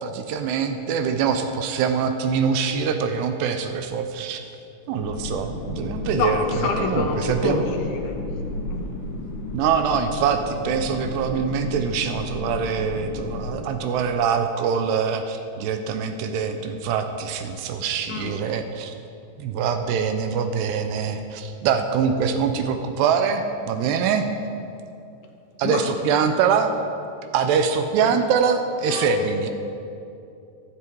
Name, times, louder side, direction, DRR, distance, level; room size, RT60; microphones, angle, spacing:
voice 1, 0.0-4.4 4.9-6.4 6.8-7.7 9.5-18.9 19.4-24.3 25.6-26.7 27.3-29.5, right 6 dB, 80° right, 7 dB, 2.7 m, -24 dB
sound 1, 5.0-13.7, left 2 dB, 55° left, 2.6 m, -33 dB
voice 2, 6.1-8.2 8.7-8.9 18.1-18.4 25.6-26.0 28.8-29.5, left 5 dB, 75° left, 3 dB, 2.8 m, -27 dB
13.5 x 12.0 x 4.6 m, 2.6 s
omnidirectional pair, 5.0 m